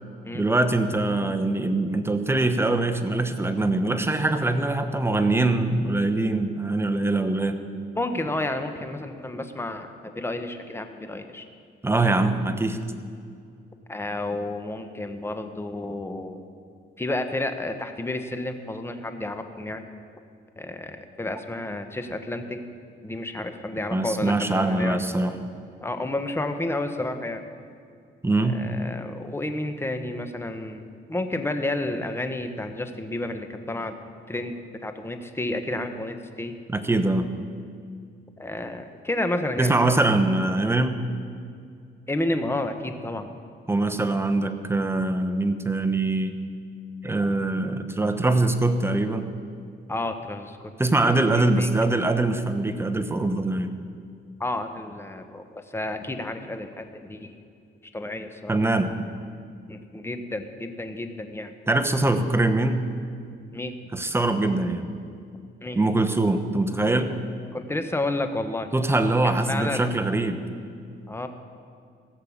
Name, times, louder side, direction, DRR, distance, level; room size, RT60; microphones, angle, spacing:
voice 1, 0.3-7.6 11.8-12.8 23.9-25.3 28.2-28.7 36.7-37.3 39.6-41.0 43.7-46.3 47.0-49.3 50.8-53.7 58.5-58.9 61.7-62.9 63.9-64.8 65.8-67.1 68.7-70.4, right 2 dB, 10° right, 7 dB, 1.0 m, -23 dB
voice 2, 7.9-11.4 13.9-16.4 17.0-19.8 20.6-22.6 23.0-25.0 25.8-27.4 28.4-30.8 31.1-33.9 34.3-34.5 34.8-36.6 38.4-39.7 42.1-43.3 49.9-50.7 51.5-51.7 54.4-57.3 57.9-58.5 59.7-61.5 63.5-63.7 65.6-65.8 67.5-68.7 69.2-69.9 71.1-71.3, left 2 dB, 10° left, 7 dB, 1.0 m, -31 dB
16.0 x 6.7 x 7.2 m, 2.3 s
cardioid pair, 90°, 20 cm